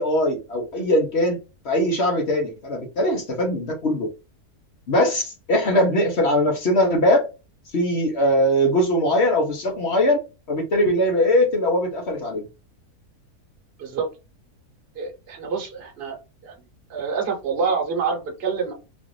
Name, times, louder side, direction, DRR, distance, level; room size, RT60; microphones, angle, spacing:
voice 1, 0.0-1.4 1.6-4.1 4.9-7.2 7.7-10.2 10.5-12.5, left 1 dB, 50° left, 1.1 m, -21 dB
voice 2, 15.0-16.2 16.4-16.5 16.9-18.7, right 5 dB, 45° right, 1.1 m, -26 dB
4.0 x 2.5 x 3.1 m
omnidirectional pair, 1.6 m